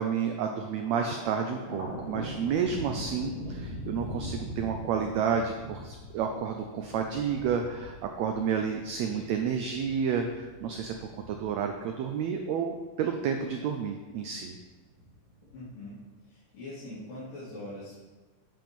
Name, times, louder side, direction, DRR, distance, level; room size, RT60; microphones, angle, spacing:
voice 1, 0.0-10.9 11.3-14.5, right 7 dB, 85° right, 4 dB, 1.5 m, -30 dB
Thunder, 0.8-13.4 13.8-14.6 15.0-15.8, equal, 10° right, 2.0 m, -42 dB
voice 2, 15.5-16.0 16.3-18.1, left 1 dB, 80° left, -13 dB, 4.8 m, -42 dB
10.5 x 5.4 x 5.2 m, 1.3 s
omnidirectional pair, 3.8 m